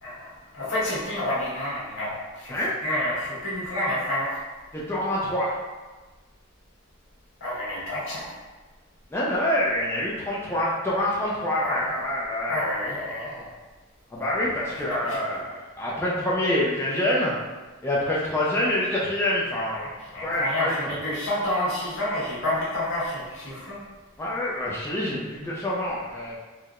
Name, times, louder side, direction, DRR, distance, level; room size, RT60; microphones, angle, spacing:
voice 1, 0.0-4.4 7.4-8.3 11.6-12.1 12.5-13.5 14.3-15.2 19.7-23.8, left 1 dB, 75° left, -8 dB, 1.3 m, -29 dB
voice 2, 4.7-5.5 9.1-12.6 14.1-17.3 17.8-19.9 20.2-20.9 24.2-26.4, left 1 dB, 10° left, -6 dB, 0.4 m, -26 dB
4.4 x 2.0 x 2.4 m, 1.3 s
head